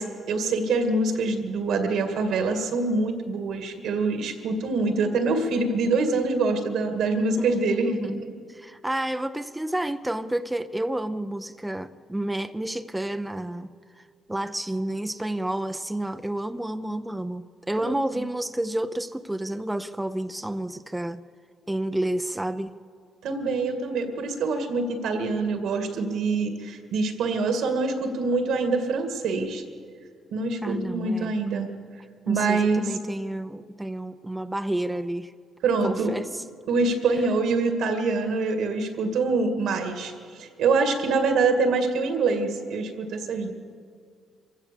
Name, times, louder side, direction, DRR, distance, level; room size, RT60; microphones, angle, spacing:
voice 1, 0.0-7.9 17.8-18.2 23.2-29.6 30.3-31.7 32.3-33.0 35.6-36.1 36.7-43.5, right 3 dB, 80° right, 2.2 m, -25 dB
voice 2, 7.4-13.7 14.0-14.1 14.3-21.2 21.7-22.7 30.6-31.3 32.3-35.3 35.8-36.4, right 1 dB, 10° right, 0.6 m, -30 dB
25.5 x 16.0 x 7.0 m
cardioid pair, 90°, 0 cm